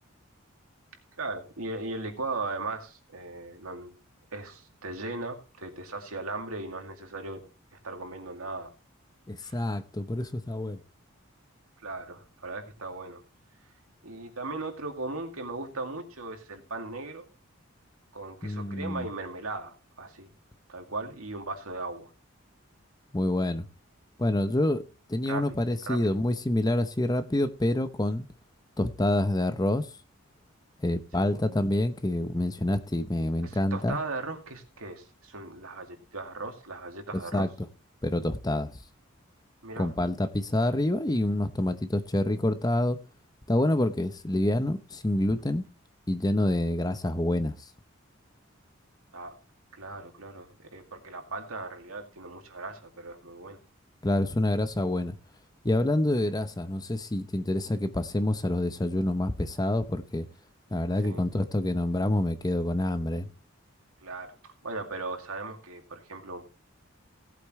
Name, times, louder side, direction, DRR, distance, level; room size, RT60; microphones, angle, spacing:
voice 1, 1.2-4.0 4.3-7.4 7.8-8.7 9.4-9.6 11.8-13.2 14.0-17.3 18.1-20.3 20.7-22.1 25.3-25.6 25.9-26.2 31.2-31.4 33.4-37.5 39.6-39.9 49.1-49.4 49.7-53.6 61.0-61.3 64.0-64.4 64.6-66.5, right 3 dB, 90° right, 2.3 m, -38 dB
voice 2, 9.3-10.8 18.4-19.1 23.1-23.7 24.2-24.8 25.1-28.3 28.8-29.9 30.8-34.0 37.3-37.5 38.0-38.7 39.8-43.0 43.5-45.6 46.1-47.7 54.0-55.2 55.6-60.3 60.7-63.3, left 1 dB, 20° left, 0.7 m, -27 dB
17.5 x 8.3 x 3.1 m
head